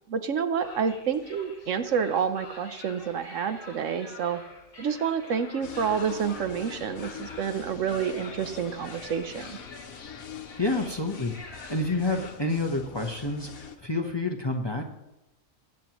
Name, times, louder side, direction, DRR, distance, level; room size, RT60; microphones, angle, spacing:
voice 1, 0.1-4.4 4.8-9.6, right 7 dB, 70° right, 10 dB, 1.1 m, -29 dB
sound 1, 0.6-12.3, left 3 dB, 70° left, 2.1 m, -47 dB
sound 2, 5.6-13.8, left 7 dB, 90° left, 1.3 m, -43 dB
voice 2, 10.6-11.3 11.7-14.8, left 2 dB, 20° left, 3 dB, 0.8 m, -28 dB
19.5 x 9.0 x 3.0 m, 0.97 s
omnidirectional pair, 1.4 m